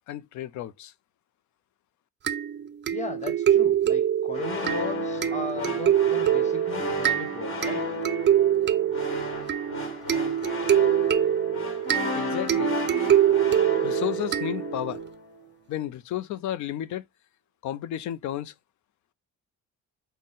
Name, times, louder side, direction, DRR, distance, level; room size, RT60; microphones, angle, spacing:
voice 1, 0.1-0.9 12.1-12.7 13.8-15.0 15.7-17.0 17.6-18.5, left 12 dB, 70° left, 0.5 m, -32 dB
sound 1, 2.3-15.0, right 10 dB, 35° right, 0.4 m, -25 dB
voice 2, 2.9-7.9, left 3 dB, 25° left, 0.9 m, -36 dB
sound 2, 4.3-15.2, left 1 dB, 45° left, 1.4 m, -33 dB
3.6 x 2.1 x 4.0 m
cardioid pair, 90°, 30 cm